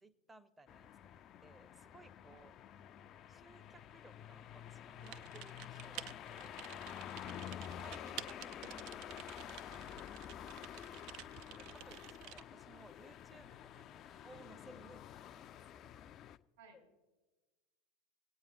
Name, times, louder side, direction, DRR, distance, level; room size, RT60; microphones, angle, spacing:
voice 1, 0.0-2.6 3.3-6.5 7.7-9.9 11.6-15.9, right 2 dB, 10° right, 12 dB, 0.6 m, -61 dB
sound 1, 0.7-16.4, left 10 dB, 35° left, 0.3 m, -50 dB
Typing, 5.0-12.4, right 13 dB, 50° right, 0.3 m, -51 dB
voice 2, 10.4-11.1 16.6-16.9, right 2 dB, 65° right, 2 dB, 3.6 m, -62 dB
26.0 x 8.8 x 2.5 m, 1.2 s
figure-of-eight pair, 80°, 0 cm